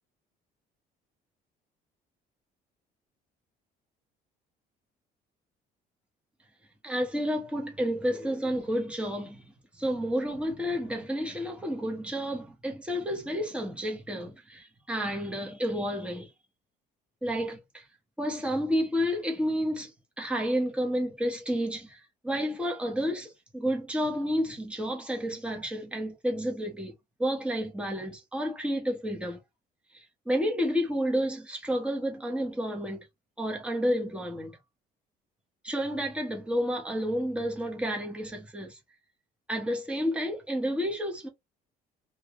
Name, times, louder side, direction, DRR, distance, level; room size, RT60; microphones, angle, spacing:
voice 1, 6.8-16.3 17.2-17.8 18.2-26.9 27.2-29.4 29.9-33.1 33.4-34.6 35.6-38.8 39.5-41.3, equal, 5° right, 1.3 m, -30 dB
3.0 x 2.7 x 3.5 m
cardioid pair, 110°, 17 cm